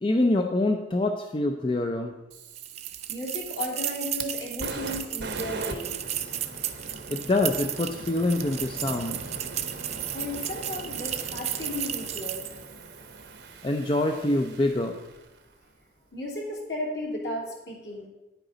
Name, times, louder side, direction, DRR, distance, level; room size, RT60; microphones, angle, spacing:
voice 1, 0.0-2.1 7.1-9.2 13.6-15.0, left 2 dB, 30° left, 4 dB, 0.5 m, -25 dB
Fire, 2.3-15.4, right 3 dB, 70° right, 1.0 m, -40 dB
sound 1, 2.6-12.6, right 11 dB, 40° right, 0.5 m, -34 dB
voice 2, 3.1-6.0 10.1-12.4 16.1-18.1, left 1 dB, 65° left, -2 dB, 2.9 m, -34 dB
10.0 x 9.0 x 3.9 m, 1.0 s
head